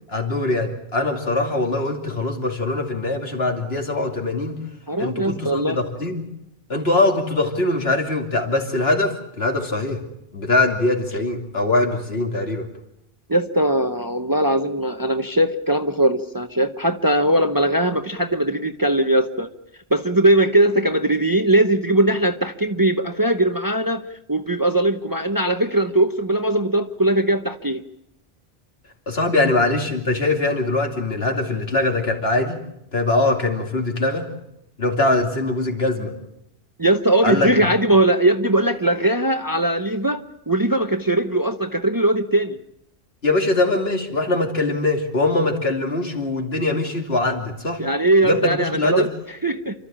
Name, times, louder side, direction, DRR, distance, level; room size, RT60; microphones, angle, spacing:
voice 1, 0.1-4.6 5.0-6.2 6.7-10.0 10.3-12.7 29.1-32.6 32.9-34.3 34.8-36.1 37.2-37.7 43.2-47.8 48.2-49.1, left 2 dB, 70° left, 3 dB, 3.1 m, -22 dB
voice 2, 4.9-5.8 13.3-19.5 19.9-24.0 24.3-27.8 36.8-42.6 47.8-49.7, right 1 dB, 20° right, 8 dB, 0.8 m, -20 dB
29.0 x 13.0 x 8.8 m, 0.82 s
omnidirectional pair, 1.1 m